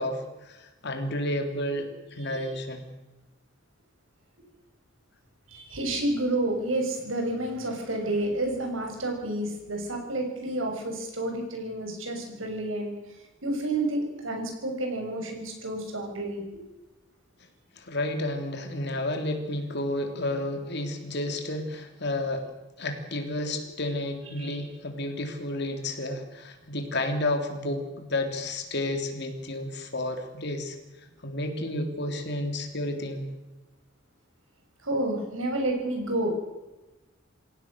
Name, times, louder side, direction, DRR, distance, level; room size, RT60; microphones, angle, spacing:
voice 1, 0.0-2.9 17.8-22.5 22.8-30.8 31.2-33.3, left 1 dB, 60° left, 5 dB, 3.5 m, -31 dB
voice 2, 2.2-2.6 5.5-12.9 13.4-16.6 24.2-24.7 34.8-36.3, right 1 dB, 90° right, 3 dB, 6.6 m, -30 dB
27.5 x 16.5 x 6.6 m, 1.1 s
head